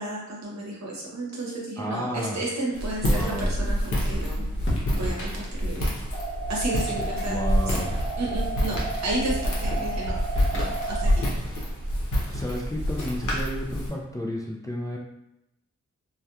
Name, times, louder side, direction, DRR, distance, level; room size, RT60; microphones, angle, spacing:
voice 1, 0.0-4.4 4.9-5.9 6.5-7.4 7.7-7.8 8.2-10.1 10.5-11.3, right 2 dB, 65° right, -3 dB, 0.8 m, -32 dB
voice 2, 1.8-2.4 3.0-3.5 7.3-7.9 12.3-15.0, left 1 dB, 10° left, -2 dB, 0.3 m, -32 dB
Walk footsteps, 2.7-13.9, equal, 80° left, 0.7 m, -27 dB
sound 1, 4.6-5.7 8.0-8.5 10.1-11.3, left 1 dB, 40° left, 0.9 m, -32 dB
sound 2, 6.1-11.1, right 4 dB, 40° right, 1.0 m, -34 dB
2.7 x 2.2 x 2.3 m, 0.87 s
wide cardioid pair, 70°, 30 cm